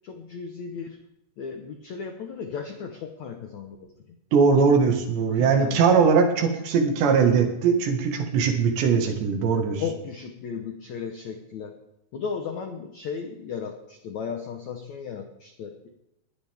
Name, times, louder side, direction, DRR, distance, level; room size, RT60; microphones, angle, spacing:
voice 1, 0.0-1.0 1.4-4.2 5.3-5.9 9.7-11.7 12.1-15.9, left 6 dB, 90° left, 4 dB, 1.6 m, -35 dB
voice 2, 4.3-9.8, right 5 dB, 75° right, 3 dB, 4.0 m, -20 dB
21.0 x 14.0 x 3.6 m, 0.84 s
omnidirectional pair, 5.1 m